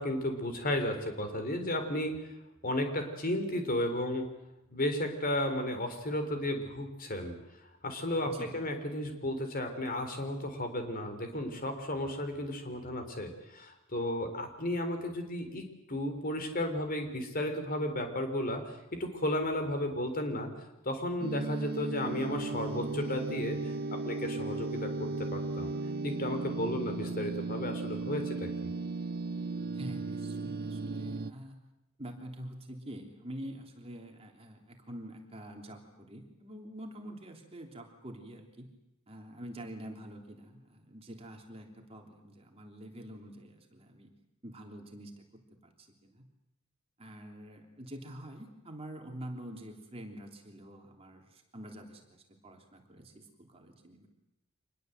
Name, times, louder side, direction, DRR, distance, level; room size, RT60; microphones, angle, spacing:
voice 1, 0.0-2.2 2.6-4.3 4.7-7.3 7.8-20.5 20.8-23.7 24.1-25.7 26.0-28.7, left 1 dB, 40° left, 6 dB, 3.8 m, -34 dB
voice 2, 8.2-8.6 29.7-31.6 32.0-38.7 39.1-44.1 44.4-45.1 45.6-46.2 47.0-54.1, right 1 dB, 30° right, 2 dB, 3.3 m, -46 dB
sound 1, 21.2-31.3, right 3 dB, 45° right, 0.8 m, -36 dB
26.0 x 20.5 x 8.0 m, 0.92 s
head